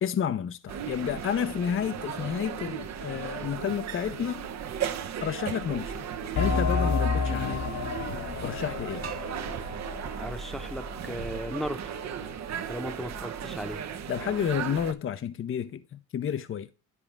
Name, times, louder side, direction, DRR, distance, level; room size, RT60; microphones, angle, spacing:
voice 1, 0.0-4.5 5.2-5.9 6.4-7.6 8.4-9.0 14.1-16.7, left 8 dB, 45° left, 0.7 m, -30 dB
sound 1, 0.7-14.9, right 8 dB, 60° right, 1.0 m, -36 dB
sound 2, 6.3-11.6, left 5 dB, 70° left, 2.0 m, -30 dB
sound 3, 9.0-11.9, right 6 dB, 45° right, 1.8 m, -47 dB
voice 2, 10.2-11.8 12.7-13.8, equal, ahead, 1.0 m, -36 dB
11.0 x 4.9 x 3.4 m
cardioid pair, 90°, 30 cm